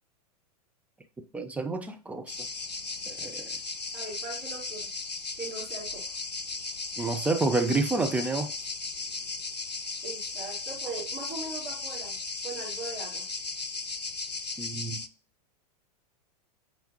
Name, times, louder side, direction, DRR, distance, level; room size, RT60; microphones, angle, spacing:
voice 1, 1.3-2.4 3.1-3.6 7.0-8.5 14.6-15.0, right 3 dB, 5° right, 0.4 m, -29 dB
sound 1, 2.3-15.1, left 3 dB, 90° left, 0.5 m, -36 dB
voice 2, 3.9-4.9 5.4-6.1 10.0-12.2 12.4-13.3, right 3 dB, 30° right, 3.4 m, -40 dB
7.8 x 4.4 x 2.8 m
figure-of-eight pair, 95°, 21 cm